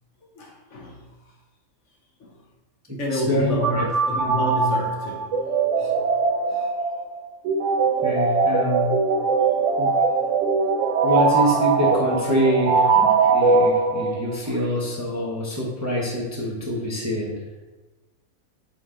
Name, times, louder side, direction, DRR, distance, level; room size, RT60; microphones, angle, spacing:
voice 1, 0.3-1.0 2.2-2.4 3.0-5.4 5.8-6.1 6.5-6.7 9.6-9.7, equal, 60° left, 0 dB, 1.3 m, -29 dB
voice 2, 3.1-3.9 8.0-8.9 9.8-9.9 11.0-17.3, equal, 15° right, -3 dB, 0.9 m, -25 dB
sound 1, 3.6-14.4, right 4 dB, 65° right, 0.8 m, -21 dB
8.3 x 3.3 x 3.8 m, 1.2 s
omnidirectional pair, 1.5 m